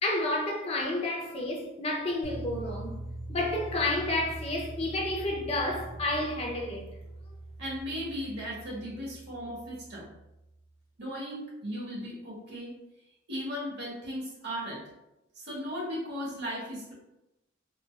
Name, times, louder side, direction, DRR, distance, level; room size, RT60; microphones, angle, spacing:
voice 1, 0.0-3.0 3.3-6.9, left 1 dB, 30° left, 0.4 m, -30 dB
sound 1, 2.2-10.4, right 1 dB, 50° left, 1.1 m, -43 dB
voice 2, 7.6-10.1 11.0-12.7 13.3-14.8 15.4-16.9, equal, 60° right, 1.1 m, -36 dB
3.8 x 2.2 x 2.3 m
head